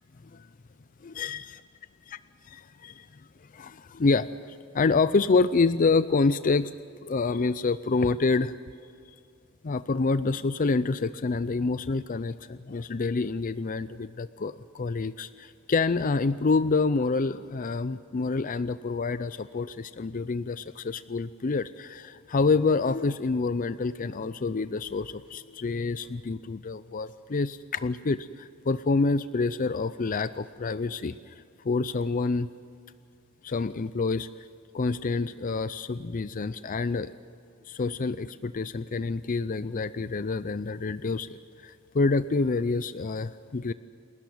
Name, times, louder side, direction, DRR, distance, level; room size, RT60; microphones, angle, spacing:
voice 1, 1.0-1.5 2.5-3.2 3.5-6.7 7.0-8.5 9.6-32.5 33.4-34.5 34.7-37.1 37.7-43.7, left 4 dB, 40° left, 14 dB, 0.5 m, -27 dB
29.0 x 13.5 x 9.3 m, 2.5 s
head